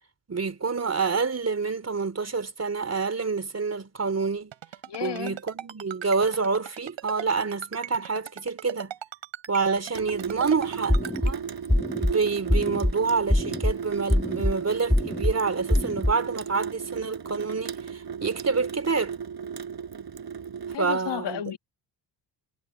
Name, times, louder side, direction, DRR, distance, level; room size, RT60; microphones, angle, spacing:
voice 1, 0.3-4.5 5.0-8.9 9.5-11.4 12.0-19.2 20.8-21.4, right 4 dB, 35° right, 3.8 m, -27 dB
Ringtone, 4.5-11.3, right 11 dB, 75° right, 7.6 m, -38 dB
voice 2, 4.9-5.4 20.7-21.6, left 10 dB, 60° left, 2.0 m, -32 dB
Water tap faucet / Sink (filling or washing) / Drip, 9.9-20.8, right 7 dB, 50° right, 6.3 m, -35 dB
sound 1, 10.9-11.3 11.7-12.1 12.5-12.9 13.3-13.7 14.1-14.5 14.9-15.3 15.7-16.1, left 1 dB, 5° left, 2.1 m, -23 dB
supercardioid pair, 65°, 46 cm